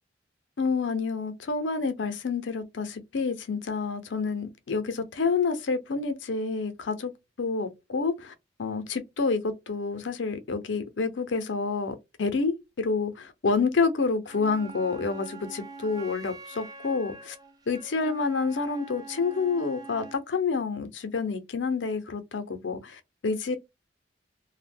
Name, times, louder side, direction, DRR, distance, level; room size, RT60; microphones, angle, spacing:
voice 1, 0.6-7.1 7.4-8.3 8.6-17.4 17.7-23.6, left 4 dB, 80° left, 0.6 m, -28 dB
Wind instrument woodwind instrument, 14.3-20.3, right 3 dB, 20° right, 0.5 m, -44 dB
2.2 x 2.1 x 3.4 m
head